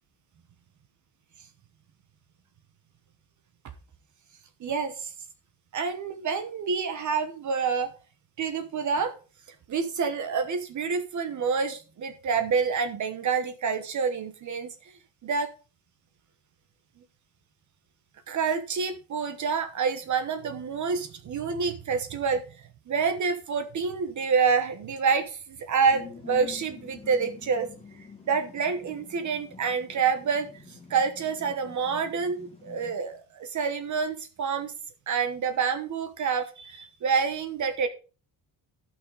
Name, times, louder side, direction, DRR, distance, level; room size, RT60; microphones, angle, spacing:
voice 1, 4.6-5.1 5.7-7.9 8.4-9.1 9.7-14.7 15.2-15.5 18.3-22.4 22.9-27.7 28.3-34.7 35.1-37.9, right 5 dB, 45° right, 9 dB, 1.1 m, -27 dB
sound 1, 25.9-32.9, left 5 dB, 15° left, 2.1 m, -47 dB
14.5 x 6.2 x 3.9 m, 0.35 s
cardioid pair, 180°, 41 cm